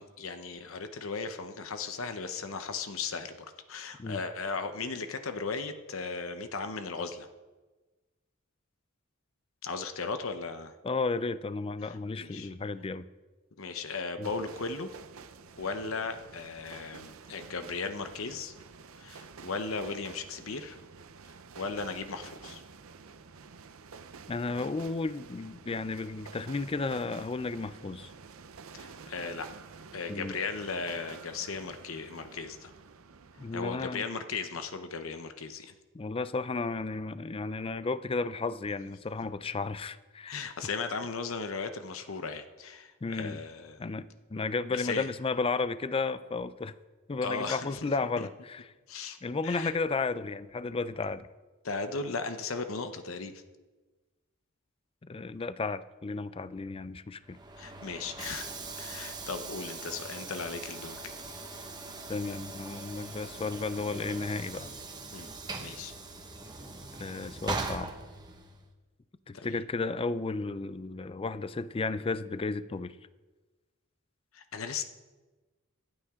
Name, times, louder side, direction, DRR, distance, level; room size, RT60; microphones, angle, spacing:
voice 1, 0.0-7.3 9.6-10.7 11.8-12.5 13.6-14.9 15.6-18.5 18.9-20.8 21.6-22.6 28.7-29.5 29.9-32.7 33.5-35.7 40.3-43.8 44.7-45.1 47.2-47.9 48.2-48.3 48.9-49.2 49.4-49.7 51.6-53.4 57.6-61.0 65.1-65.3 65.6-65.9 69.3-69.6 74.3-74.8, left 4 dB, 70° left, 8 dB, 0.9 m, -37 dB
voice 2, 10.8-13.1 14.2-14.3 24.3-28.1 30.1-30.4 33.4-34.0 35.9-40.4 43.0-43.4 43.8-44.0 44.3-46.7 47.1-48.7 49.2-51.3 55.0-57.4 62.1-64.7 67.0-67.9 69.3-73.0, left 3 dB, 25° left, 14 dB, 0.4 m, -33 dB
sound 1, 14.2-34.0, right 5 dB, 75° right, 0.7 m, -50 dB
Train / Sliding door, 57.2-68.7, right 3 dB, 20° right, 1.3 m, -41 dB
25.5 x 8.8 x 3.7 m, 1.2 s
head